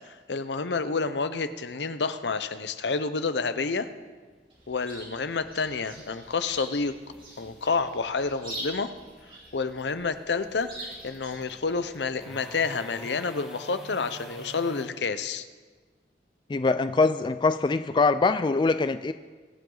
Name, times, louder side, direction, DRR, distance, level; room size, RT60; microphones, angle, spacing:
voice 1, 0.1-3.9 4.7-7.0 7.4-8.9 9.5-15.5, left 4 dB, 75° left, 11 dB, 0.7 m, -29 dB
sound 1, 2.9-14.9, equal, ahead, 1.7 m, -49 dB
Chirp tweet, 4.5-12.1, right 1 dB, 30° right, 4.0 m, -44 dB
voice 2, 16.5-19.1, left 3 dB, 25° left, 11 dB, 0.3 m, -23 dB
23.5 x 7.9 x 3.9 m, 1.4 s
head